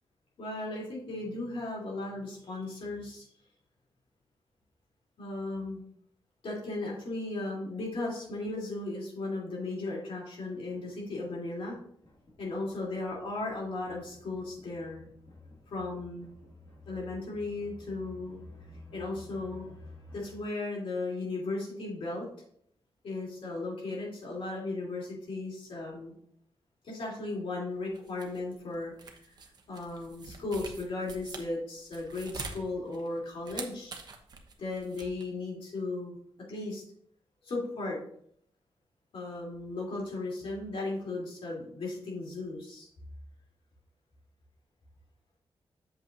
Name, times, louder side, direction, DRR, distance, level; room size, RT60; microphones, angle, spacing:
voice 1, 0.4-3.3 5.2-5.8 6.4-11.8 12.4-15.0 15.7-16.3 16.8-18.4 18.9-19.6 20.1-22.3 23.0-26.1 26.8-29.4 29.7-33.9 34.6-36.2 36.5-36.8 37.4-38.0 39.1-42.9, left 2 dB, 65° left, -3 dB, 3.1 m, -36 dB
sound 1, 10.5-20.4, left 2 dB, 50° left, 2.0 m, -52 dB
sound 2, 27.7-35.2, right 4 dB, 45° right, 1.0 m, -45 dB
8.1 x 7.5 x 2.6 m, 0.66 s
wide cardioid pair, 170°, 10 cm